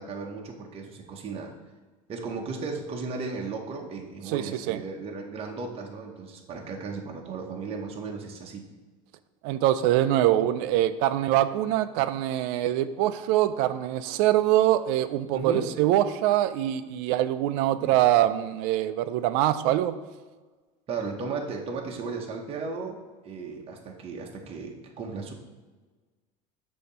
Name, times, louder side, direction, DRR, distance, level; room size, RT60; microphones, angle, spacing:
voice 1, 0.0-1.5 2.1-8.6 15.3-15.7 17.8-18.0 20.9-25.3, right 4 dB, 35° right, 1 dB, 0.8 m, -35 dB
voice 2, 4.3-4.8 9.4-19.9, right 13 dB, 65° right, 12 dB, 0.4 m, -24 dB
6.5 x 2.8 x 5.5 m, 1.3 s
supercardioid pair, 115°, 18 cm